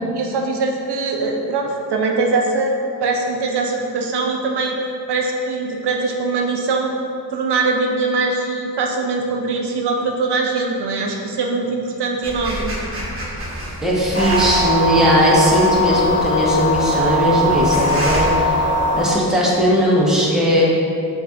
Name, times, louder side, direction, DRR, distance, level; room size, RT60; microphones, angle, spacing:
voice 1, 0.1-7.0 7.3-12.7, right 3 dB, 75° right, 1 dB, 0.5 m, -22 dB
Rustling cloth, 12.2-18.9, equal, 30° right, 1.0 m, -29 dB
voice 2, 13.8-18.6 18.9-20.7, equal, ahead, -5 dB, 0.9 m, -18 dB
sound 1, 14.1-19.1, equal, 30° left, 0.6 m, -20 dB
6.6 x 2.6 x 2.4 m, 2.5 s
cardioid pair, 65°, 41 cm